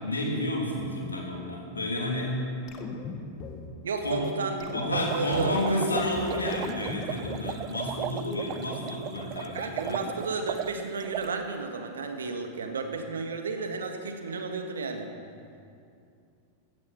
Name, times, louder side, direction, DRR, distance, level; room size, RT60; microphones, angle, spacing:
voice 1, 0.0-2.4 4.0-4.3 4.7-10.0, left 1 dB, 80° left, -1 dB, 3.0 m, -30 dB
sound 1, 2.7-3.7 4.2-4.3 4.6-5.6 5.9-7.5, left 5 dB, 35° left, 1.6 m, -39 dB
voice 2, 3.8-5.8 9.5-15.1, right 4 dB, 70° right, 5 dB, 1.6 m, -33 dB
sound 2, 4.9-11.4, right 15 dB, 40° right, 0.4 m, -36 dB
16.0 x 13.5 x 5.6 m, 2.5 s
figure-of-eight pair, 90°, 0 cm